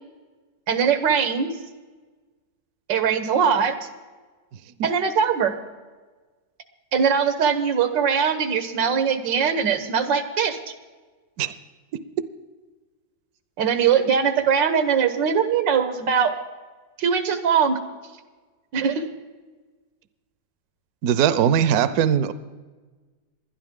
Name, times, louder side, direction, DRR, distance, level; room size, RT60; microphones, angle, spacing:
voice 1, 0.7-1.6 2.9-3.8 4.8-5.5 6.9-10.6 13.6-16.3 17.0-17.8 18.7-19.1, right 7 dB, 90° right, 9 dB, 1.7 m, -21 dB
voice 2, 21.0-22.3, right 9 dB, 65° right, 13 dB, 1.0 m, -20 dB
20.5 x 12.0 x 3.7 m, 1.3 s
omnidirectional pair, 1.9 m